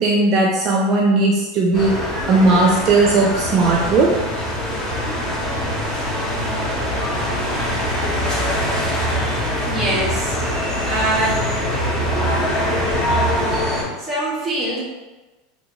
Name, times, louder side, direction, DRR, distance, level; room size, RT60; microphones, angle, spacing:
voice 1, 0.0-4.2, right 3 dB, 40° right, -1 dB, 0.4 m, -17 dB
sound 1, 1.7-13.8, equal, 30° left, 1.5 m, -23 dB
voice 2, 9.6-10.4 10.8-11.4 14.0-14.8, right 1 dB, 5° right, -8 dB, 1.4 m, -23 dB
4.0 x 2.9 x 2.9 m, 1.1 s
supercardioid pair, 135°, 0 cm